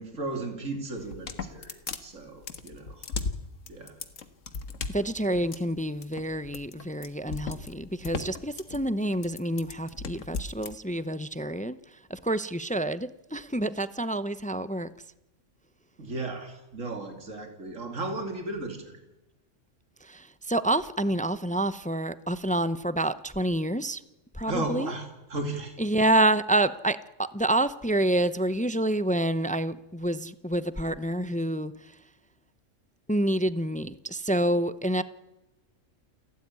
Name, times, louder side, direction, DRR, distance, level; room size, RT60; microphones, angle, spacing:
voice 1, 0.0-3.2 3.7-4.0 16.0-19.0 24.5-25.7, right 2 dB, 85° right, 3.0 m, -35 dB
sound 1, 1.0-10.7, left 4 dB, 85° left, 1.8 m, -37 dB
voice 2, 4.9-14.9 20.0-24.0 24.3-24.9 25.8-32.0 33.1-35.0, right 1 dB, 10° left, 0.5 m, -28 dB
29.0 x 12.5 x 9.5 m
omnidirectional pair, 1.3 m